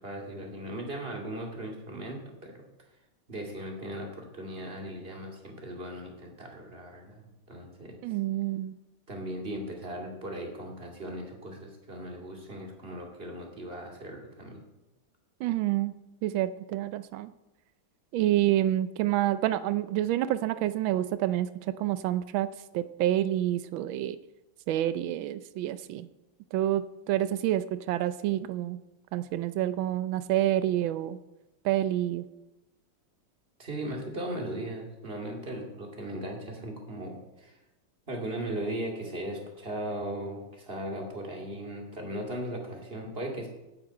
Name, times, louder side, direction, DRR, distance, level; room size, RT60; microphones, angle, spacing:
voice 1, 0.0-2.7 3.3-8.0 9.1-14.6 33.6-37.6 38.1-43.5, right 1 dB, 30° right, 1 dB, 2.6 m, -38 dB
voice 2, 8.0-8.7 15.4-17.3 18.1-24.2 24.7-26.1 26.5-28.8 29.1-31.2 31.6-32.3, right 13 dB, 80° right, 13 dB, 1.4 m, -28 dB
9.0 x 8.8 x 8.4 m, 0.99 s
omnidirectional pair, 2.1 m